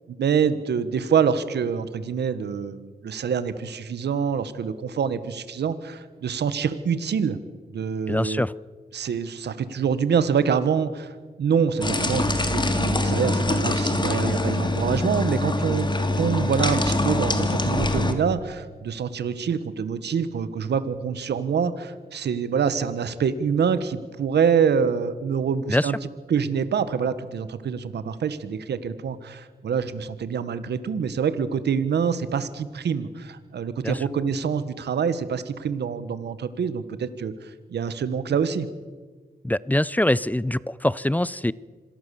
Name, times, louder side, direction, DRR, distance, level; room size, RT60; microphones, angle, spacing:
voice 1, 0.2-7.4 7.7-8.4 8.9-15.9 16.2-25.9 26.3-38.7, right 7 dB, 85° right, 13 dB, 1.4 m, -26 dB
voice 2, 8.1-8.5 25.7-25.9 33.8-34.0 39.4-41.5, left 1 dB, 10° left, 20 dB, 0.6 m, -23 dB
sound 1, 11.8-18.1, left 2 dB, 25° left, 2.6 m, -24 dB
26.0 x 18.0 x 7.0 m, 1.4 s
cardioid pair, 65°, 17 cm